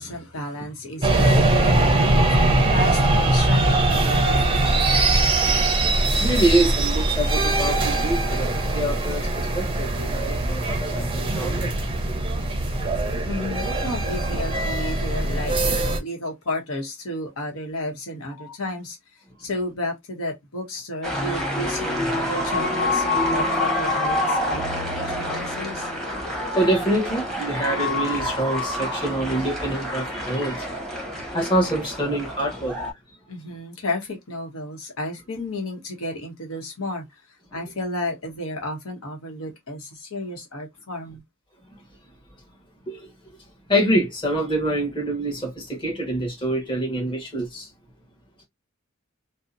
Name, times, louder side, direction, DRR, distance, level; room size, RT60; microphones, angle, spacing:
voice 1, 0.0-4.9 13.3-25.9 33.3-37.2 37.5-41.2, left 1 dB, 85° left, 0.9 m, -32 dB
sound 1, 1.0-16.0, right 2 dB, 25° right, 0.5 m, -21 dB
voice 2, 6.1-11.7 18.4-18.5 26.1-30.6 31.3-32.7 42.9-43.1 43.7-47.7, right 1 dB, 25° left, 1.1 m, -26 dB
sound 2, 21.0-32.9, left 1 dB, ahead, 0.8 m, -27 dB
2.7 x 2.1 x 2.4 m
head